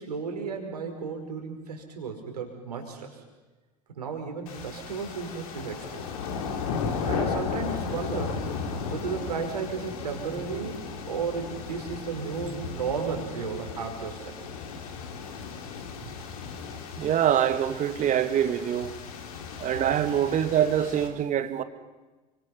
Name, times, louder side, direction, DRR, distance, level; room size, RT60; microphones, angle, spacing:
voice 1, 0.0-3.2 4.0-6.1 7.0-8.4 8.9-14.3, right 5 dB, 80° right, 5.1 m, -34 dB
sound 1, 4.5-21.1, left 5 dB, 65° left, 3.7 m, -35 dB
voice 2, 17.0-18.9 19.6-21.6, right 10 dB, 40° right, 2.0 m, -24 dB
29.5 x 25.5 x 5.6 m
figure-of-eight pair, 70°, 20 cm